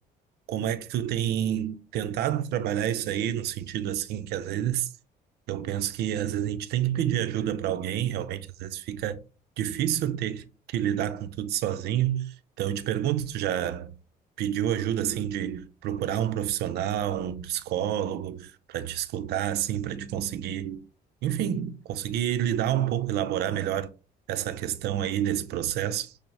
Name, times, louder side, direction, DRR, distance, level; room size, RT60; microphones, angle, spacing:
voice 1, 0.5-4.9 5.5-9.2 9.6-13.9 14.4-20.8 21.2-23.9 24.3-26.1, right 11 dB, 75° right, 0.6 m, -29 dB
6.1 x 2.1 x 3.3 m
cardioid pair, 110°, 17 cm